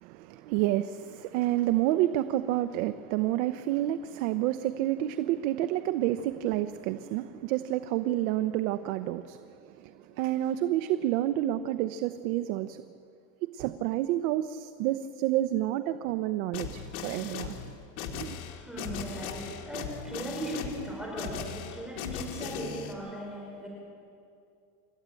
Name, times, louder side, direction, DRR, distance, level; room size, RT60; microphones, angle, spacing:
voice 1, 0.0-12.8 13.5-17.7 18.1-18.4, right 14 dB, 70° right, 0.9 m, -29 dB
sound 1, 16.5-22.9, left 7 dB, 75° left, 2.7 m, -38 dB
voice 2, 18.3-23.7, right 1 dB, ahead, 5.0 m, -38 dB
29.0 x 13.5 x 9.0 m
cardioid pair, 160°, 43 cm